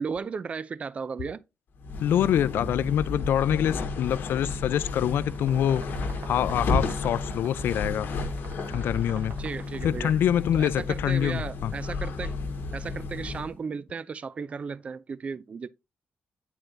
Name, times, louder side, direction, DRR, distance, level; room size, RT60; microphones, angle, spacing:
voice 1, 0.0-1.4 9.4-10.1 10.5-12.4 12.7-15.7, right 5 dB, 35° right, 0.3 m, -35 dB
sound 1, 1.8-13.5, left 3 dB, 65° left, 1.2 m, -32 dB
voice 2, 2.0-5.8 6.3-8.1 8.7-9.4 9.8-11.7, left 10 dB, 80° left, 0.4 m, -25 dB
sound 2, 4.7-10.4, right 5 dB, 60° right, 0.9 m, -48 dB
8.8 x 4.5 x 2.6 m
cardioid pair, 120°, 4 cm